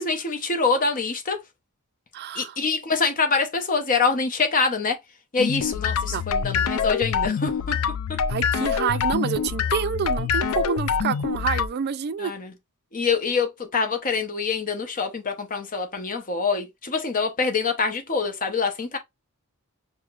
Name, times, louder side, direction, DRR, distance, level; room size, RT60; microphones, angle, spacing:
voice 1, 0.0-1.4 2.3-5.0 5.3-7.8 8.1-8.2 12.2-12.5 12.9-19.0, left 4 dB, 40° left, 0.7 m, -25 dB
voice 2, 2.1-2.6 6.1-6.2 8.3-12.3, right 7 dB, 50° right, 0.3 m, -28 dB
sound 1, 5.4-11.7, left 6 dB, 85° left, 0.4 m, -25 dB
6.2 x 2.1 x 2.3 m
head